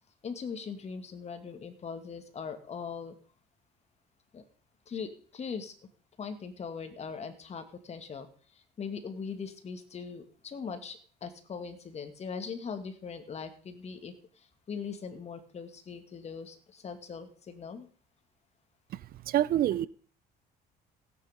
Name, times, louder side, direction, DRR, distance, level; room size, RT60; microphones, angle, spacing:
voice 1, 0.2-3.1 4.3-4.4 4.9-5.7 6.2-17.9, left 6 dB, 40° left, 8 dB, 2.5 m, -40 dB
voice 2, 18.9-19.9, right 12 dB, 60° right, 19 dB, 0.7 m, -27 dB
17.0 x 9.5 x 5.3 m, 0.43 s
cardioid pair, 110°, 17 cm